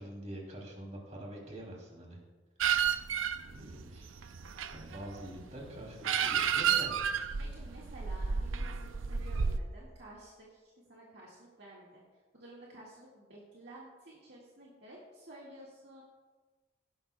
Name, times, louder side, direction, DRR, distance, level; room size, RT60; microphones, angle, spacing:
voice 1, 0.0-2.2 3.0-3.1 3.4-4.2 4.6-6.9, equal, 35° right, -1 dB, 2.8 m, -45 dB
sound 1, 2.6-9.6, right 7 dB, 90° right, 0.5 m, -32 dB
voice 2, 7.4-12.0 12.3-16.0, right 1 dB, 55° right, -5 dB, 1.9 m, -52 dB
17.0 x 11.5 x 2.2 m, 1.3 s
head